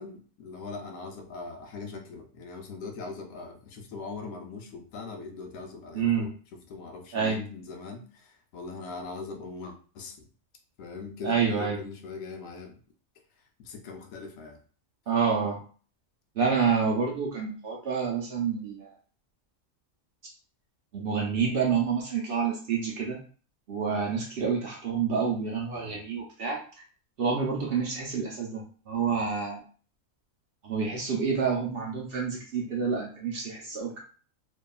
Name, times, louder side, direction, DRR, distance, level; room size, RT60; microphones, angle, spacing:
voice 1, 0.0-6.3 6.7-10.3 10.8-12.7 13.6-14.6 25.7-26.1 28.9-29.2, left 4 dB, 85° left, 3 dB, 1.0 m, -41 dB
voice 2, 5.9-6.3 7.1-7.4 11.2-11.8 15.1-15.6 16.4-18.9 20.9-23.2 23.7-26.6 27.2-29.6 30.6-34.0, right 6 dB, 60° right, -1 dB, 0.6 m, -28 dB
2.7 x 2.3 x 2.2 m, 0.40 s
omnidirectional pair, 1.3 m